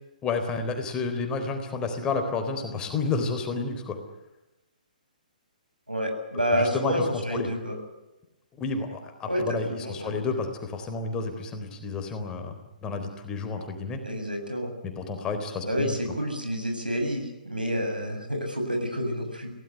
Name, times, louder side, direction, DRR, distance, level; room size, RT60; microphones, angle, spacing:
voice 1, 0.2-4.0 6.5-7.5 8.6-12.5 12.8-14.0 15.0-15.9, left 4 dB, 15° left, 5 dB, 4.0 m, -30 dB
voice 2, 5.9-7.8 9.3-10.1 14.0-14.7 15.6-19.5, equal, 90° right, 4 dB, 7.6 m, -29 dB
26.0 x 17.5 x 9.4 m, 0.97 s
figure-of-eight pair, 125°, 5 cm